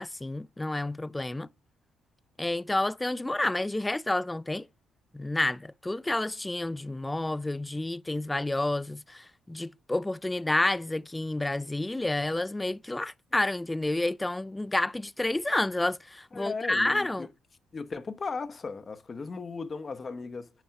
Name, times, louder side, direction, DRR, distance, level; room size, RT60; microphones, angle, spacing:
voice 1, 0.0-1.5 2.4-4.7 5.1-17.3, left 2 dB, 15° left, 0.3 m, -29 dB
voice 2, 16.3-17.3 17.7-20.5, left 4 dB, 35° left, 0.8 m, -36 dB
9.1 x 4.1 x 5.7 m
cardioid pair, 90°, 0 cm